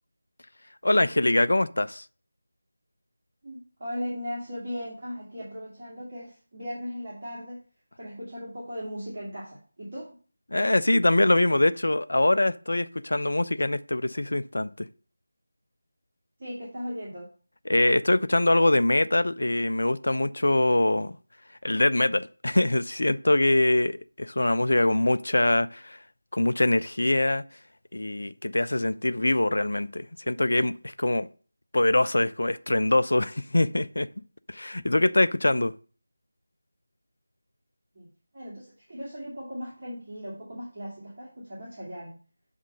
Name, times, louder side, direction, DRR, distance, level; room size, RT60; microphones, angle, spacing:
voice 1, 0.8-2.0 10.5-14.9 17.7-21.1 21.6-26.0 26.3-27.4 27.9-31.3 31.7-34.1 34.5-35.7, left 1 dB, 60° left, 0.4 m, -23 dB
voice 2, 3.4-7.6 8.0-10.2 16.4-17.3 37.9-38.1 38.3-42.2, equal, 35° right, 2.2 m, -37 dB
7.3 x 3.6 x 5.3 m
figure-of-eight pair, 165°, 0 cm